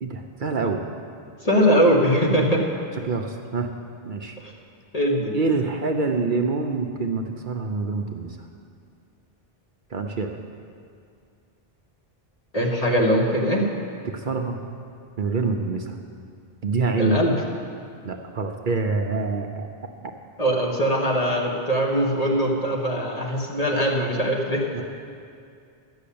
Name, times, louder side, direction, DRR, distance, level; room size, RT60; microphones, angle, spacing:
voice 1, 0.0-0.8 3.0-3.7 4.0-4.4 5.3-8.4 9.9-10.3 14.0-14.6 15.2-16.0 16.6-17.2 18.0-19.7 24.7-24.8, right 4 dB, 55° right, 4 dB, 0.8 m, -26 dB
voice 2, 1.4-2.6 4.4-4.5 4.9-5.3 12.5-13.6 17.0-17.3 20.4-24.7, equal, 40° left, -2 dB, 1.5 m, -21 dB
12.0 x 6.4 x 8.5 m, 2.4 s
omnidirectional pair, 1.0 m